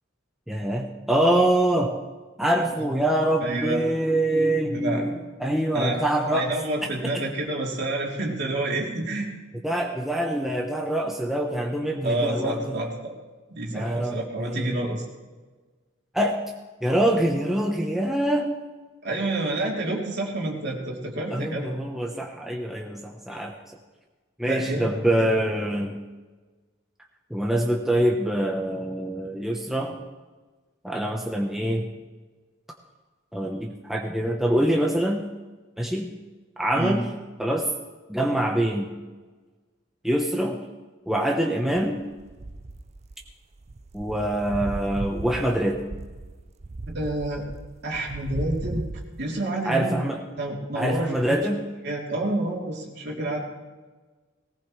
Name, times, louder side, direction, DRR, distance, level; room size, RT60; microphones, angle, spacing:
voice 1, 0.5-1.9 2.4-6.5 7.0-7.2 9.6-12.7 13.7-15.0 16.1-16.4 16.8-18.5 21.3-23.5 24.4-26.0 27.3-30.0 30.8-31.9 33.3-35.2 35.8-36.1 36.6-37.1 37.4-37.7 38.1-38.9 40.0-40.6 41.1-42.0 43.9-45.8 49.6-50.2 50.7-51.6, right 1 dB, ahead, -1 dB, 1.0 m, -25 dB
voice 2, 3.4-3.8 4.7-5.1 5.7-9.3 12.0-13.1 13.5-15.0 19.0-21.7 24.4-25.3 36.7-37.0 46.9-47.5 47.8-48.8 49.2-50.0 50.4-51.4 51.8-53.4, right 2 dB, 55° right, -2 dB, 3.3 m, -29 dB
sound 1, 41.8-49.4, right 2 dB, 35° right, 0.4 m, -37 dB
19.0 x 18.5 x 3.3 m, 1.3 s
head